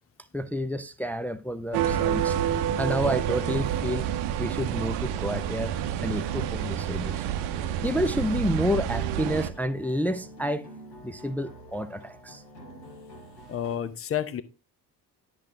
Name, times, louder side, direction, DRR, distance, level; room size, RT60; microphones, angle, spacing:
voice 1, 0.3-2.4 2.8-7.2 7.8-10.7 11.0-12.4, equal, 5° left, 0.5 m, -30 dB
sound 1, 1.7-9.5, right 10 dB, 55° right, 0.9 m, -28 dB
sound 2, 2.1-13.8, right 1 dB, 85° left, 2.1 m, -48 dB
voice 2, 13.5-14.4, left 9 dB, 30° left, 0.9 m, -30 dB
10.5 x 6.2 x 3.7 m
figure-of-eight pair, 50°, 48 cm